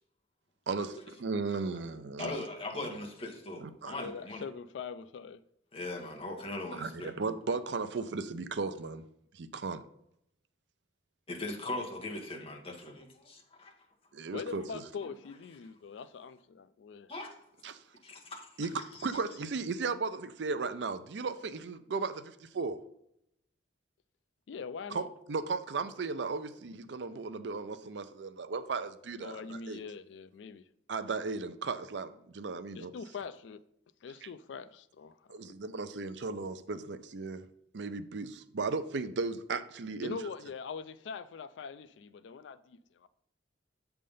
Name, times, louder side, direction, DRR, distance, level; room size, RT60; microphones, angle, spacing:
voice 1, 0.7-2.4 2.8-2.9 3.6-3.9 6.7-9.0 9.3-9.8 14.1-14.6 17.6-17.8 18.6-22.8 24.9-29.8 30.9-32.9 34.2-34.3 35.3-37.4 37.7-40.2, right 4 dB, 70° right, 0.5 m, -36 dB
voice 2, 2.2-4.4 5.7-7.1 11.3-13.7 17.1-17.3 18.0-18.5 18.9-19.1, left 2 dB, 30° left, 1.3 m, -40 dB
voice 3, 3.9-5.4 14.3-17.1 24.5-25.1 29.2-30.7 32.7-33.6 34.0-35.5 40.0-43.1, left 5 dB, 80° left, 0.4 m, -43 dB
7.6 x 3.5 x 5.4 m
head